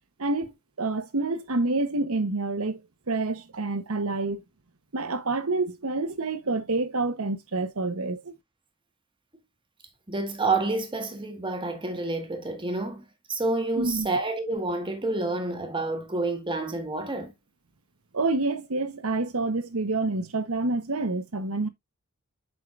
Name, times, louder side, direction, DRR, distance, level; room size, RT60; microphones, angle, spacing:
voice 1, 0.2-0.5 0.8-2.8 3.1-4.4 4.9-8.2 13.8-14.1 18.1-21.7, right 3 dB, 70° right, 1.1 m, -27 dB
voice 2, 10.1-13.0 13.3-17.3, right 2 dB, 20° right, 1.7 m, -28 dB
7.9 x 5.7 x 2.5 m
head